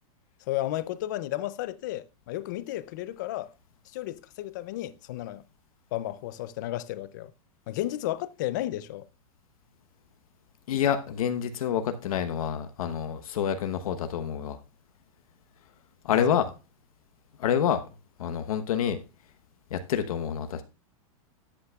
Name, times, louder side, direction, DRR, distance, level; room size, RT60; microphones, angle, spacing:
voice 1, 0.5-3.5 3.9-5.4 5.9-7.3 7.7-9.1 16.1-16.2, left 14 dB, 35° left, 0.4 m, -33 dB
voice 2, 10.7-14.6 16.0-16.5 17.4-17.8 18.2-19.0 19.7-20.6, left 8 dB, 85° left, 1.0 m, -27 dB
13.0 x 8.5 x 2.3 m
supercardioid pair, 180°, 18 cm